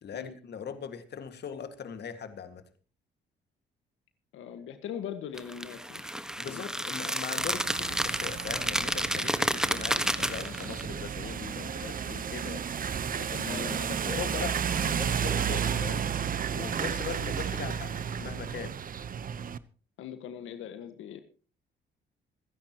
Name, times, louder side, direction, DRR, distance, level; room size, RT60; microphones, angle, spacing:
voice 1, 0.0-2.6 6.4-12.8 13.2-16.1 16.5-18.8, left 7 dB, 60° left, 9 dB, 2.0 m, -40 dB
voice 2, 4.3-6.6 13.5-13.9 20.0-21.2, left 9 dB, 85° left, 8 dB, 1.6 m, -41 dB
sound 1, 5.4-10.8, equal, 5° right, 1.4 m, -30 dB
sound 2, 7.4-19.6, right 7 dB, 45° right, 1.0 m, -33 dB
27.0 x 10.0 x 3.0 m, 0.39 s
cardioid pair, 90°, 20 cm